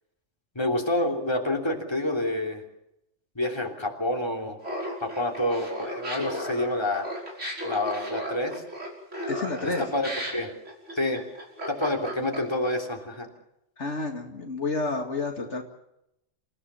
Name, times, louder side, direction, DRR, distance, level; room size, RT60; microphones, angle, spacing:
voice 1, 0.5-2.6 3.3-4.6 5.0-7.1 7.6-8.6 9.8-10.5 10.9-11.2 11.7-13.3, left 1 dB, 20° left, 1 dB, 3.3 m, -28 dB
Laughter, 4.6-12.7, equal, 75° right, 6.0 m, -35 dB
voice 2, 9.3-9.8 13.8-15.6, left 3 dB, 65° left, 2 dB, 2.5 m, -30 dB
28.5 x 16.0 x 7.1 m, 0.83 s
omnidirectional pair, 1.3 m